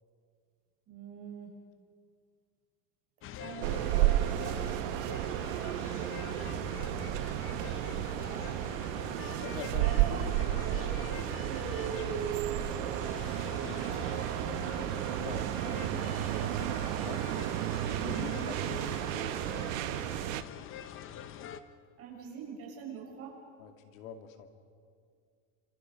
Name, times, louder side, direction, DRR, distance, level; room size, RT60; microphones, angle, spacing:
voice 1, 0.9-1.5 3.4-3.8 4.1-5.3 8.2-8.5 9.8-12.8 13.1-14.5 22.0-23.4, right 6 dB, 35° right, -1 dB, 6.5 m, -41 dB
sound 1, 3.2-21.6, left 10 dB, 30° left, 0.9 m, -45 dB
voice 2, 3.6-4.1 7.7-8.3 9.4-10.3 10.6-10.7 13.4-13.8 14.6-17.2 17.8-19.4 23.6-24.5, left 7 dB, 80° left, 6 dB, 2.5 m, -46 dB
sound 2, 3.6-20.4, right 14 dB, 80° right, 1.1 m, -33 dB
Fire, 6.0-16.8, right 6 dB, 15° right, 0.8 m, -46 dB
28.5 x 27.0 x 5.3 m, 2.2 s
supercardioid pair, 155°, 39 cm